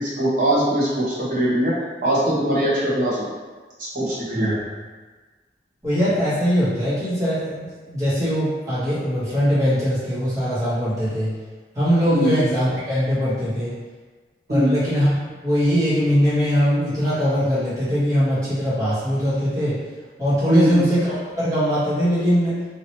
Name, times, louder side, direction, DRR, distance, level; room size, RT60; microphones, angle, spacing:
voice 1, 0.0-1.7 2.0-3.3 3.8-4.6 12.1-12.3 14.5-14.8 20.5-20.8, right 1 dB, 50° right, -8 dB, 1.1 m, -21 dB
voice 2, 5.8-11.3 11.7-13.8 14.5-15.1 15.4-19.8 20.2-22.5, equal, 20° right, -12 dB, 1.4 m, -21 dB
2.9 x 2.9 x 3.0 m, 1.4 s
head